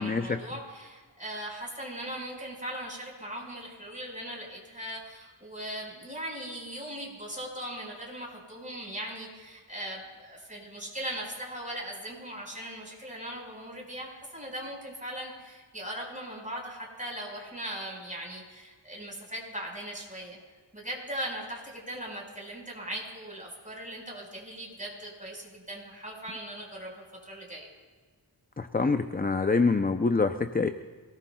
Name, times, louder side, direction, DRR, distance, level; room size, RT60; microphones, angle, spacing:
voice 1, 0.0-20.4 20.7-27.7, right 1 dB, 15° right, -2 dB, 4.9 m, -39 dB
voice 2, 28.6-30.7, left 4 dB, 20° left, 8 dB, 0.5 m, -25 dB
27.0 x 18.0 x 2.3 m, 1.4 s
wide cardioid pair, 60°, 44 cm